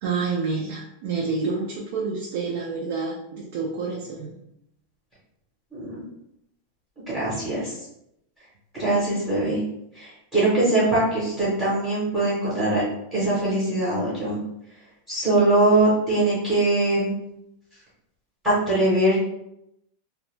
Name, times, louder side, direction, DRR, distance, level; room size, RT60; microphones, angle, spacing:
voice 1, 0.0-4.4, right 4 dB, 50° right, -2 dB, 0.4 m, -28 dB
voice 2, 7.1-7.7 8.7-9.6 9.9-12.8 13.1-14.4 15.1-17.1 18.4-19.1, right 2 dB, 10° right, -10 dB, 0.8 m, -22 dB
2.4 x 2.1 x 3.0 m, 0.80 s
supercardioid pair, 175°, 0 cm